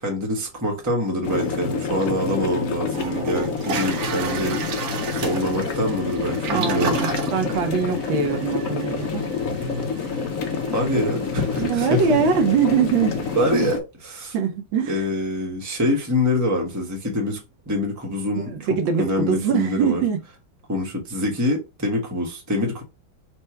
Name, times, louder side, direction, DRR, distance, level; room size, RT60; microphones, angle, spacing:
voice 1, 0.0-4.6 5.1-7.0 10.7-12.0 13.3-14.3 14.9-17.4 17.7-18.5 18.9-20.0 20.7-22.8, left 1 dB, 10° right, 0.9 m, -25 dB
sound 1, 1.2-13.8, left 5 dB, 65° left, 0.8 m, -28 dB
Toilet flush, 2.4-2.5 2.9-13.7, right 4 dB, 55° right, 1.2 m, -33 dB
voice 2, 6.5-9.2 11.6-13.1 13.5-13.7 14.3-15.0 18.5-20.2, right 6 dB, 75° right, 1.5 m, -23 dB
4.4 x 2.6 x 4.5 m
omnidirectional pair, 2.2 m